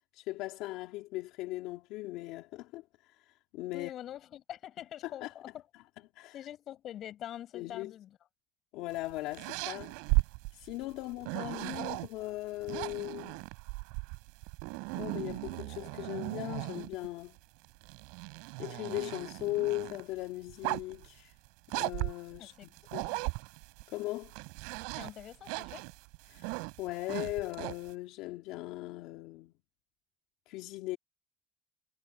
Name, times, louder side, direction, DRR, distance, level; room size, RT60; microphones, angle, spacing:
voice 1, 0.1-3.9 5.0-5.3 6.1-6.4 7.5-7.9 8.7-10.0 10.5-13.4 14.9-17.4 18.6-21.3 21.7-23.0 23.9-24.3 26.3-29.5 30.5-31.0, left 18 dB, 80° left, 2.2 m, -39 dB
voice 2, 3.7-5.6 6.3-8.2 22.4-23.2 25.0-25.9, left 11 dB, 55° left, 7.8 m, -45 dB
sound 1, 8.9-12.1 12.6-17.1 17.6-20.0 20.5-21.1 21.7-23.8 24.2-27.9, right 32 dB, 85° right, 4.3 m, -36 dB
supercardioid pair, 90°, 0 cm